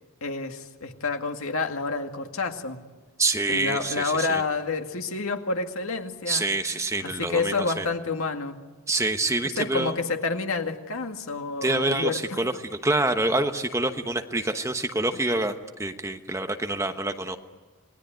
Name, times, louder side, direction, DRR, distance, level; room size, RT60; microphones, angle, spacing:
voice 1, 0.2-2.8 3.5-6.5 7.0-8.6 9.4-12.5, left 3 dB, 75° left, 5 dB, 2.1 m, -29 dB
voice 2, 3.2-4.4 6.3-7.8 8.9-10.0 11.6-17.4, right 2 dB, 15° right, 6 dB, 1.1 m, -26 dB
28.5 x 20.0 x 9.3 m, 1.3 s
head